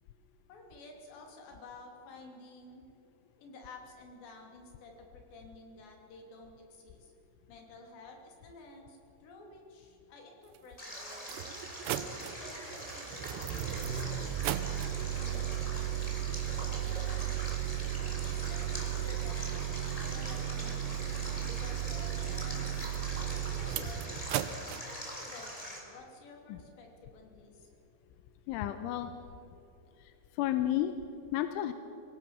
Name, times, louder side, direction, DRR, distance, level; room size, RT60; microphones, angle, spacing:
voice 1, 0.5-2.8 3.4-7.1 7.5-11.4 11.9-16.0 16.9-17.3 18.2-19.6 19.9-21.1 21.4-22.8 23.3-24.7 25.1-27.7, left 3 dB, 60° left, 2 dB, 4.9 m, -52 dB
sound 1, 10.6-10.7 11.2-24.8, right 11 dB, 90° right, 2.3 m, -35 dB
Stream, 10.8-25.8, equal, 10° left, 3.0 m, -43 dB
voice 2, 28.5-29.2 30.0-30.9 31.3-31.7, left 12 dB, 80° left, 9 dB, 3.1 m, -32 dB
25.0 x 17.0 x 7.2 m, 2.9 s
omnidirectional pair, 5.9 m